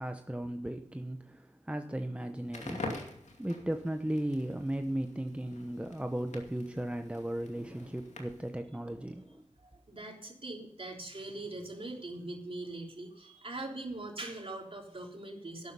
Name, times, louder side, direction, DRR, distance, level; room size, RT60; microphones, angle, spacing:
voice 1, 0.0-3.0 3.4-9.4, right 1 dB, 10° right, 6 dB, 0.9 m, -36 dB
Crackle, 2.4-8.6, left 2 dB, 70° left, 2.5 m, -46 dB
voice 2, 9.6-15.7, right 2 dB, 50° right, 1 dB, 3.4 m, -42 dB
11.5 x 9.6 x 5.5 m, 0.81 s
cardioid pair, 50°, 12 cm